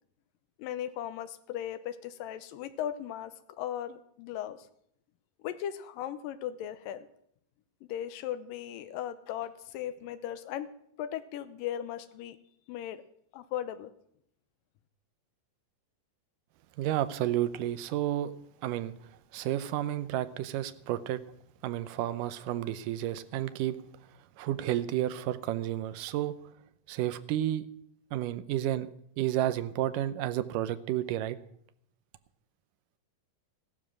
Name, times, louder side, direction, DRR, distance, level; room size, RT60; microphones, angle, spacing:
voice 1, 0.6-4.7 5.4-7.1 7.8-10.7 11.0-12.4 12.7-13.0 13.3-13.9, left 11 dB, 85° left, 2.5 m, -37 dB
voice 2, 16.8-18.3 18.6-18.9 19.3-21.2 21.6-23.8 24.4-26.4 26.9-27.6 28.1-28.9 29.2-31.4, right 13 dB, 75° right, 2.3 m, -31 dB
15.0 x 12.5 x 6.1 m
omnidirectional pair, 4.0 m